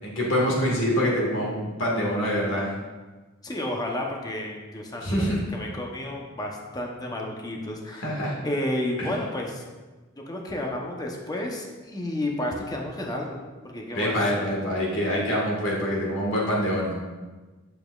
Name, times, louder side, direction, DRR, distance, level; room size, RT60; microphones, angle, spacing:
voice 1, 0.0-2.7 5.0-5.4 8.0-8.4 9.0-9.1 13.9-16.9, equal, 70° left, -4 dB, 1.7 m, -25 dB
voice 2, 3.4-8.1 8.4-9.6 10.3-13.4 13.6-14.2, left 1 dB, 20° left, 0 dB, 0.8 m, -31 dB
8.6 x 6.9 x 2.4 m, 1.3 s
head